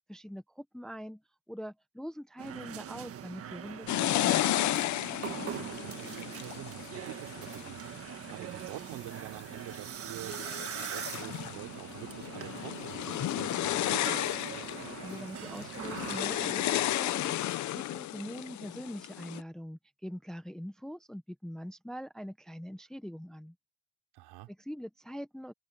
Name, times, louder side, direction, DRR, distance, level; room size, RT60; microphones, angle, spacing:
voice 1, 0.1-1.2 1.5-4.4 14.5-23.5 24.7-25.5, equal, ahead, 0.7 m, -43 dB
sound 1, 2.4-17.0, right 9 dB, 35° right, 1.5 m, -42 dB
sound 2, 3.9-8.6 9.2-9.7 10.2-19.4, left 14 dB, 45° left, 0.7 m, -33 dB
voice 2, 5.5-14.1 24.1-24.5, right 16 dB, 75° right, 4.2 m, -47 dB
cardioid pair, 175°, 39 cm